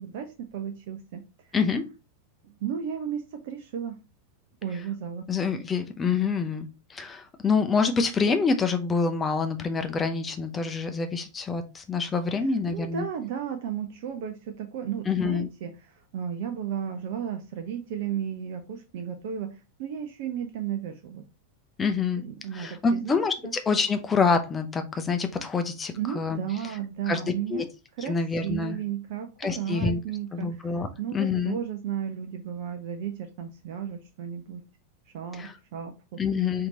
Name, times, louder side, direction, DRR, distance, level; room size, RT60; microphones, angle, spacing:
voice 1, 0.0-1.5 2.4-4.0 4.6-5.2 12.4-21.2 22.2-23.5 25.9-27.6 28.0-34.6 35.1-36.2, right 9 dB, 50° right, 6 dB, 0.5 m, -34 dB
voice 2, 1.5-1.9 5.3-13.0 15.1-15.5 21.8-22.2 22.5-26.4 27.1-27.2 27.5-27.6 28.1-28.8 29.4-30.0 30.3-31.6 35.3-35.5 36.2-36.7, left 5 dB, 20° left, 7 dB, 0.6 m, -26 dB
4.4 x 2.8 x 3.7 m, 0.29 s
figure-of-eight pair, 90°, 0 cm